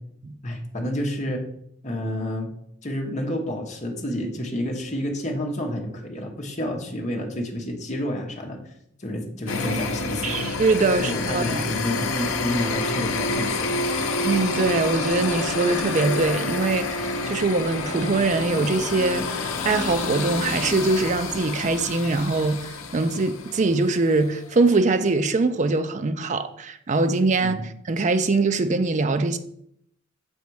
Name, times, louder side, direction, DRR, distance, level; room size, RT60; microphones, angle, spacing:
voice 1, 0.4-1.4 1.8-2.5 2.8-8.6 9.0-10.4 11.0-13.8 27.4-27.7, left 1 dB, 35° left, 1.1 m, -29 dB
sound 1, 9.5-24.2, left 3 dB, 75° left, 0.7 m, -28 dB
voice 2, 10.2-11.7 14.2-19.3 19.6-29.4, right 3 dB, 35° right, 0.4 m, -23 dB
7.1 x 4.1 x 4.7 m
head